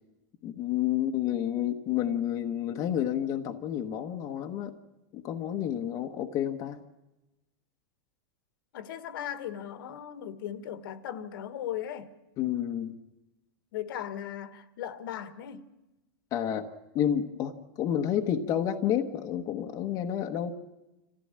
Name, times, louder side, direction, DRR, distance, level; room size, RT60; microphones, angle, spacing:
voice 1, 0.4-4.8 5.1-6.8 12.4-13.0 16.3-16.7 16.9-20.5, left 10 dB, 30° left, 1.1 m, -30 dB
voice 2, 8.7-12.1 13.7-15.7, left 10 dB, 65° left, 1.5 m, -37 dB
26.5 x 15.0 x 8.7 m
supercardioid pair, 165°, 12 cm